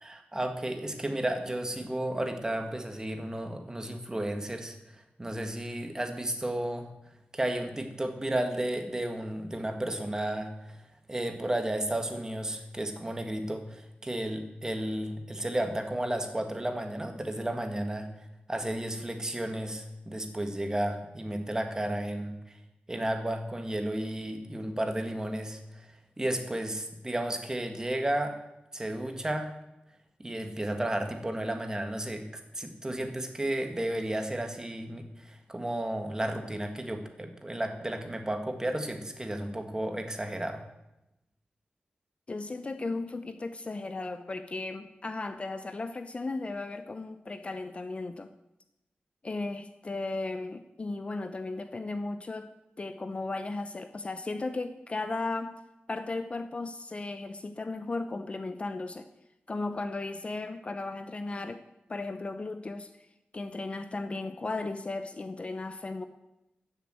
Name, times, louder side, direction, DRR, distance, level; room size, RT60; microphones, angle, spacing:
voice 1, 0.0-6.9 7.3-10.8 11.1-18.1 18.5-22.6 22.9-25.9 26.2-28.3 28.7-29.5 30.2-32.3 32.5-40.6, right 1 dB, 20° right, 5 dB, 1.8 m, -33 dB
voice 2, 42.3-48.3 49.2-52.5 52.8-55.6 55.9-59.1 59.5-61.6 61.9-62.9 63.3-66.1, left 3 dB, 35° left, 10 dB, 0.7 m, -35 dB
14.0 x 6.9 x 9.0 m, 0.92 s
wide cardioid pair, 140°, 4 cm